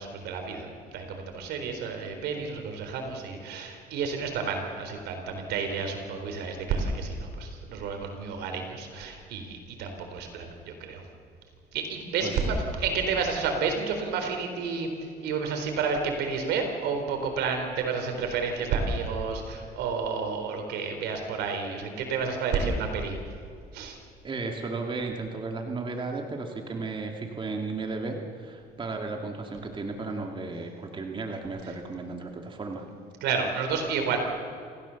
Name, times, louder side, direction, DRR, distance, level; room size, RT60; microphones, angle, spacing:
voice 1, 0.0-11.0 11.7-14.9 15.2-23.2 23.7-24.0 33.2-34.2, right 5 dB, 85° right, 5 dB, 4.0 m, -30 dB
voice 2, 12.2-12.6 22.6-22.7 24.2-32.8, right 3 dB, 30° right, 2 dB, 2.4 m, -34 dB
28.0 x 15.5 x 7.2 m, 2.3 s
cardioid pair, 110°, 17 cm